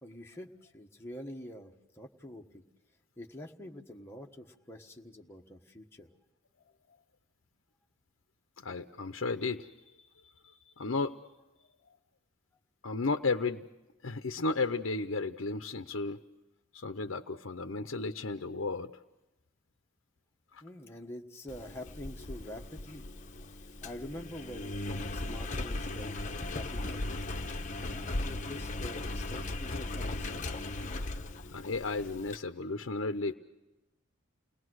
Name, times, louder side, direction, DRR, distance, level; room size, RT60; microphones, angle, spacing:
voice 1, 0.0-2.6 3.2-6.1 20.6-23.1 23.8-24.8 25.1-27.3 27.8-30.7, left 1 dB, 10° left, 0 dB, 1.4 m, -46 dB
voice 2, 8.6-11.2 12.8-13.7 14.0-16.2 16.7-18.9 20.5-20.6 31.5-33.3, left 3 dB, 80° left, 7 dB, 0.8 m, -34 dB
Engine, 21.5-32.4, left 2 dB, 40° left, 1.0 m, -37 dB
29.5 x 19.5 x 6.4 m, 1.1 s
head